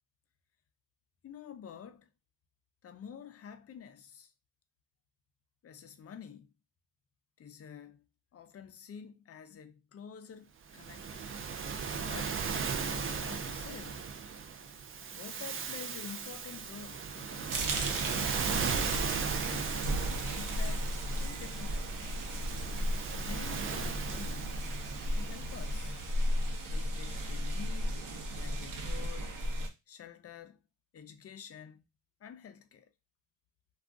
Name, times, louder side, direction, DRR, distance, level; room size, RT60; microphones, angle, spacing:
voice 1, 1.2-2.1 2.8-4.3 5.6-6.5 7.4-8.0 8.3-11.3 12.0-12.4 12.8-14.1 15.1-18.2 19.3-20.0 20.3-21.0 21.2-22.2 23.1-24.6 25.1-26.0 26.7-28.0 28.4-29.4 29.9-30.6 30.9-31.8 32.2-32.9, left 7 dB, 45° left, 0.5 m, -49 dB
Waves surf, 10.7-26.2, right 6 dB, 40° right, 0.4 m, -37 dB
sound 1, 17.5-29.7, equal, 65° right, 0.8 m, -35 dB
sound 2, 19.6-25.6, equal, 25° right, 1.0 m, -50 dB
2.4 x 2.3 x 3.5 m
cardioid pair, 75°, 34 cm